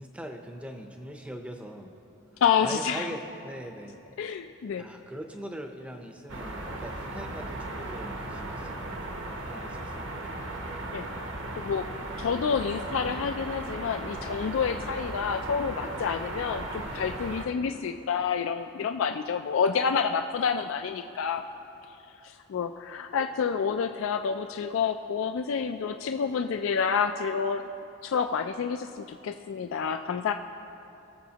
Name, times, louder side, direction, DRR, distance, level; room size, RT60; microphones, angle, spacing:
voice 1, 0.0-1.9 2.6-3.9 4.7-10.7, equal, 5° right, 4 dB, 0.6 m, -42 dB
voice 2, 2.4-3.1 4.2-4.8 10.9-11.1 11.6-11.9 12.2-21.4 22.2-27.7 28.0-30.3, left 6 dB, 70° left, 7 dB, 0.3 m, -28 dB
sound 1, 6.3-17.5, right 2 dB, 60° right, 0.9 m, -36 dB
21.0 x 7.1 x 2.9 m, 2.8 s
head